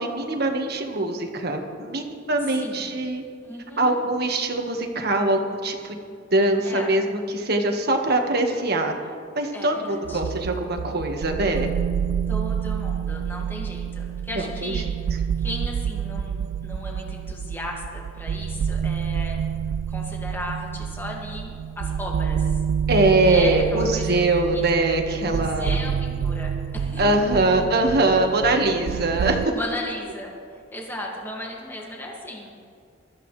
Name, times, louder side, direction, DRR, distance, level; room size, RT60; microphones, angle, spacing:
voice 1, 0.0-3.2 3.8-6.0 6.3-8.9 9.3-11.7 14.3-14.7 22.9-25.8 27.0-29.5, right 2 dB, 55° right, 3 dB, 1.6 m, -22 dB
voice 2, 3.4-4.0 6.6-6.9 9.5-10.2 12.3-19.4 19.9-22.6 23.2-24.2 24.5-24.7 25.2-27.3 28.8-29.1 29.5-32.5, left 1 dB, 10° left, -2 dB, 2.1 m, -36 dB
sound 1, 10.0-29.5, right 7 dB, 80° right, 0.3 m, -28 dB
23.0 x 13.5 x 3.3 m, 2.4 s
head